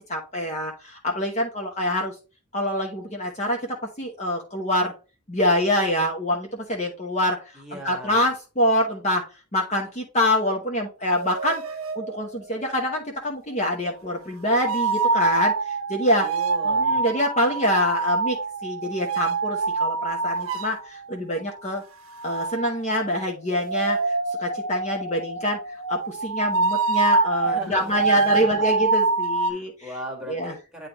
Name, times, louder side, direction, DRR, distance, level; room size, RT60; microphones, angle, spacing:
voice 1, 0.1-2.1 2.5-4.9 5.3-9.2 9.5-11.6 11.9-16.3 16.6-21.8 22.2-29.9 30.3-30.5, left 1 dB, 30° left, 1 dB, 1.0 m, -25 dB
voice 2, 7.5-8.3 16.2-16.9 27.4-28.7 29.5-30.9, right 1 dB, 5° right, 0 dB, 1.6 m, -38 dB
sound 1, 11.0-12.5 14.5-20.9 22.1-29.5, right 4 dB, 70° right, 0.7 m, -25 dB
9.5 x 3.3 x 3.0 m, 0.31 s
head